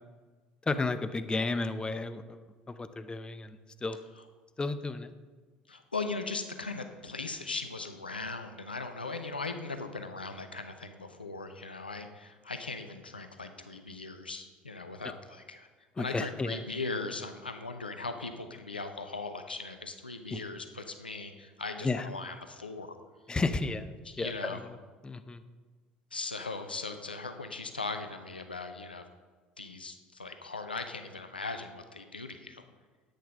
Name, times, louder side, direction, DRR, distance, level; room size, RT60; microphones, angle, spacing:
voice 1, 0.7-4.0 4.6-5.1 16.0-16.6 20.3-20.4 21.8-22.1 23.3-23.9 24.2-24.6 25.0-25.4, left 3 dB, 15° left, 11 dB, 0.7 m, -33 dB
voice 2, 5.7-15.7 16.0-23.0 24.0-24.6 26.1-29.1 29.6-32.6, left 3 dB, 85° left, 8 dB, 0.7 m, -39 dB
10.0 x 8.7 x 5.3 m, 1.4 s
figure-of-eight pair, 65°, 5 cm